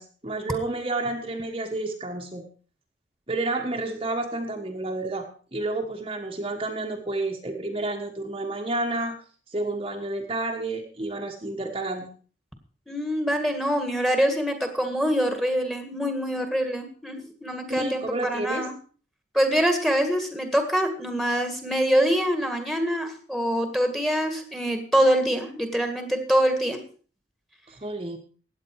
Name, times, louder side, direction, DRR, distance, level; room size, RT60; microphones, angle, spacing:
voice 1, 0.0-2.4 3.3-9.2 9.5-12.1 17.7-18.7 27.7-28.2, right 2 dB, 30° right, 1 dB, 1.3 m, -30 dB
voice 2, 12.9-18.7 19.3-26.8, equal, ahead, 6 dB, 1.9 m, -24 dB
16.0 x 9.6 x 4.8 m, 0.40 s
head